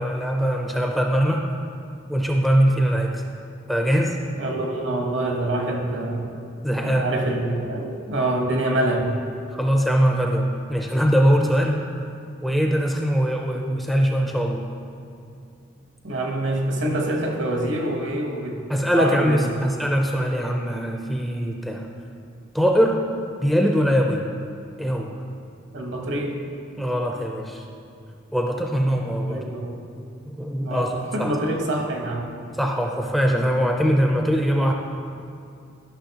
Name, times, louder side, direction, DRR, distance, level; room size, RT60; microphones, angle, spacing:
voice 1, 0.0-1.5 2.1-3.2 3.7-4.2 6.6-7.1 9.5-11.9 12.4-14.6 18.7-21.9 22.5-23.0 23.4-24.2 24.8-25.1 26.8-27.6 28.3-29.5 30.3-31.3 32.5-34.7, equal, ahead, 1 dB, 0.4 m, -22 dB
voice 2, 4.4-6.3 6.8-9.2 16.0-19.5 25.7-26.4 29.3-29.8 30.6-32.2, right 1 dB, 65° right, 1 dB, 1.0 m, -26 dB
11.5 x 6.0 x 2.8 m, 2.5 s
head